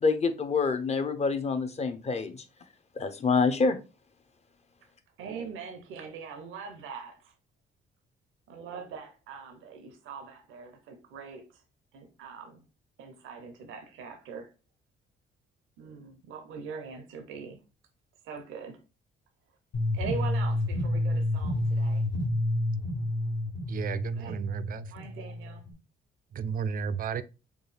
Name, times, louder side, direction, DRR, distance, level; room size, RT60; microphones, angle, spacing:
voice 1, 0.0-2.4 3.0-3.8, left 4 dB, 35° left, 0.6 m, -26 dB
voice 2, 5.2-7.3 8.5-11.6 11.9-12.6 13.0-14.5 15.8-17.6 18.2-18.8 19.9-22.1 24.2-24.4 24.9-25.6, right 5 dB, 85° right, 0.7 m, -42 dB
sound 1, 19.7-25.7, left 1 dB, 65° left, 1.3 m, -29 dB
voice 3, 23.7-24.9 26.3-27.2, right 7 dB, 45° right, 0.4 m, -33 dB
4.6 x 2.3 x 3.2 m
cardioid pair, 90°, 20 cm